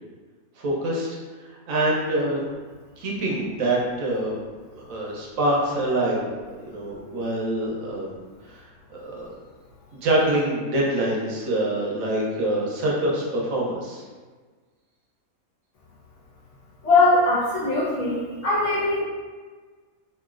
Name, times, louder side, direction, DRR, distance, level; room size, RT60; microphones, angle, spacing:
voice 1, 0.6-1.1 1.7-2.4 3.0-4.4 4.7-6.3 6.6-8.1 9.1-9.3 9.9-14.0, right 1 dB, 70° right, -4 dB, 1.0 m, -25 dB
voice 2, 16.8-19.0, left 2 dB, 60° left, -7 dB, 1.2 m, -21 dB
3.0 x 2.7 x 2.4 m, 1.4 s
omnidirectional pair, 1.5 m